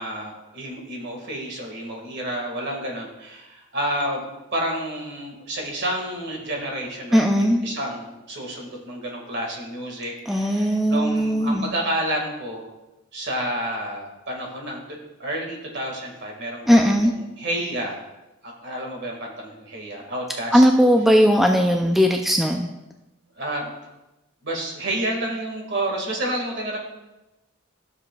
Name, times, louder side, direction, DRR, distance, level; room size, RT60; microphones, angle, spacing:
voice 1, 0.0-12.7 13.1-14.8 15.2-18.0 18.4-20.6 23.4-23.7 24.4-26.8, right 1 dB, 55° right, 0 dB, 1.8 m, -30 dB
voice 2, 7.1-7.6 10.3-11.7 16.7-17.1 20.5-22.7, equal, ahead, 2 dB, 0.3 m, -18 dB
13.0 x 7.0 x 2.3 m, 0.98 s
head